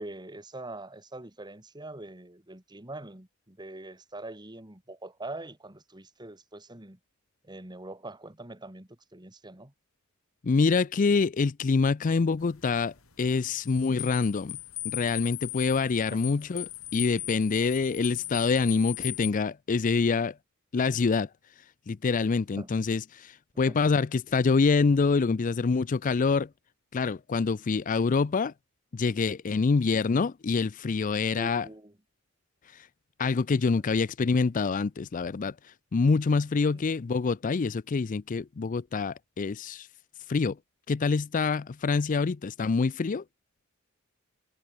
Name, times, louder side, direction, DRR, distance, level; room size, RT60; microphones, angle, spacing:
voice 1, 0.0-7.0 7.4-9.7 16.1-16.3 22.6-22.7 23.6-23.8 29.5-29.6 31.3-31.9 36.6-36.9, right 2 dB, 20° right, 2.4 m, -43 dB
voice 2, 10.4-14.6 14.8-20.3 20.7-21.3 21.9-26.5 26.9-28.5 28.9-31.7 32.7-32.9 33.2-35.5 35.9-39.9 40.3-40.6 40.9-43.2, left 4 dB, 40° left, 0.4 m, -26 dB
sound 1, 12.4-19.3, left 18 dB, 90° left, 3.8 m, -38 dB
head